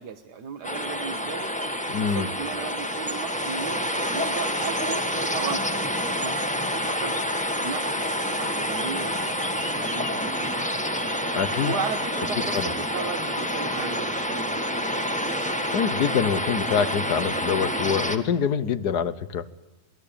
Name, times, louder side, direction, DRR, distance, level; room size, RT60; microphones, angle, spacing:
voice 1, 0.0-1.5 2.0-7.1 7.6-10.7 11.6-14.7, right 6 dB, 70° right, 5 dB, 1.6 m, -36 dB
sound 1, 0.6-18.2, equal, 5° left, 1.6 m, -28 dB
voice 2, 1.9-2.3 11.3-11.7 12.5-12.7 15.7-19.5, left 7 dB, 65° left, 15 dB, 1.5 m, -25 dB
26.5 x 19.5 x 8.7 m, 1.0 s
omnidirectional pair, 1.9 m